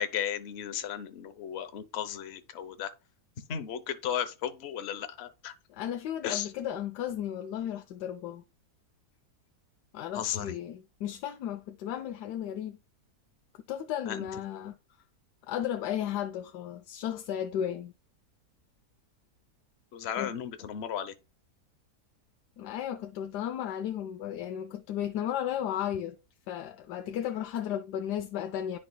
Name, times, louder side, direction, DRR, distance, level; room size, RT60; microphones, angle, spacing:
voice 1, 0.0-2.9 3.5-5.5 6.2-6.5 10.1-10.5 14.1-14.2 19.9-21.1, left 9 dB, 50° left, 0.9 m, -34 dB
voice 2, 5.7-8.4 9.9-12.8 13.7-14.7 15.5-17.9 20.2-20.3 22.6-26.2 26.5-28.8, left 10 dB, 85° left, 1.2 m, -34 dB
10.5 x 4.9 x 2.2 m
omnidirectional pair, 1.7 m